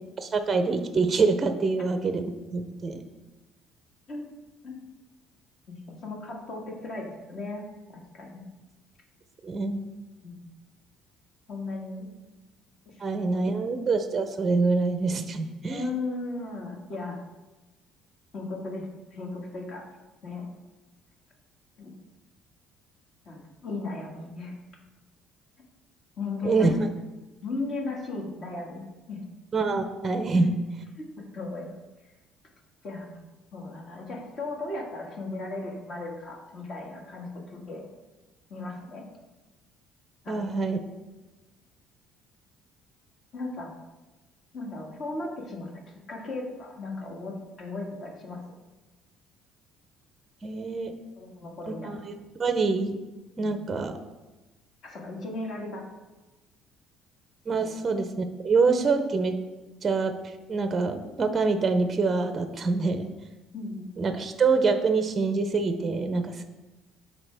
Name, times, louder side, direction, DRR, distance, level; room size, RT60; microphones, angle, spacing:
voice 1, 0.2-3.0 9.4-9.8 13.0-15.8 26.4-26.8 29.5-30.5 40.3-40.8 50.4-50.9 51.7-52.1 52.4-53.0 53.4-54.0 57.5-59.3 59.8-63.1 64.0-66.4, right 4 dB, 25° right, 8 dB, 0.5 m, -25 dB
voice 2, 5.7-7.6 7.9-8.5 10.2-10.5 11.5-12.1 12.8-13.5 15.7-17.2 18.3-19.8 20.2-20.5 21.8-21.9 23.2-24.5 26.2-26.7 27.4-28.8 29.1-29.2 30.3-30.5 31.2-31.7 32.8-33.2 33.5-37.8 38.5-39.0 40.2-40.4 43.3-43.8 44.5-45.7 46.1-48.4 51.2-51.9 53.4-53.5 54.8-55.8 57.5-57.7 63.5-63.9, left 2 dB, 45° left, 0 dB, 1.7 m, -36 dB
11.5 x 4.4 x 3.4 m, 1.1 s
cardioid pair, 145°, 0 cm